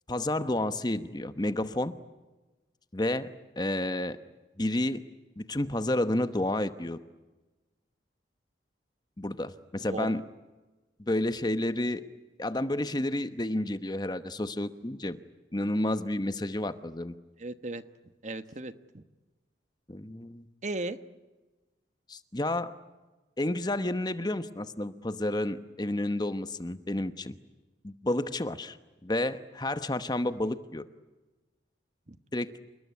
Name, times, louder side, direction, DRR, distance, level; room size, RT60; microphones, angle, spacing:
voice 1, 0.1-1.9 2.9-4.2 4.6-5.0 5.4-7.0 9.2-10.3 11.0-12.1 12.4-15.2 15.5-17.2 19.9-20.4 22.1-22.8 23.4-27.3 27.8-28.8 29.0-30.9 32.3-32.5, left 1 dB, 25° left, 11 dB, 1.0 m, -30 dB
voice 2, 9.9-10.2 17.4-17.8 18.2-19.0 20.6-21.0 32.1-32.2, right 2 dB, 40° right, 11 dB, 1.2 m, -36 dB
29.0 x 20.0 x 9.6 m, 1.2 s
head